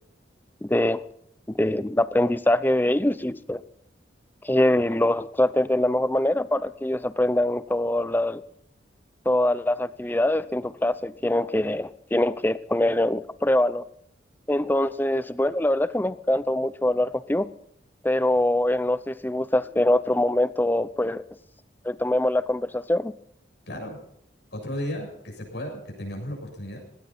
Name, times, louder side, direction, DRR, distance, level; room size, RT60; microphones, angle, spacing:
voice 1, 0.6-1.0 1.5-3.6 4.4-8.4 9.3-13.8 14.5-17.5 18.0-21.2 21.8-23.1, left 1 dB, 10° left, 15 dB, 0.6 m, -23 dB
voice 2, 23.7-24.0 24.5-26.8, equal, 70° left, 1 dB, 7.3 m, -34 dB
18.5 x 18.0 x 4.2 m, 0.69 s
head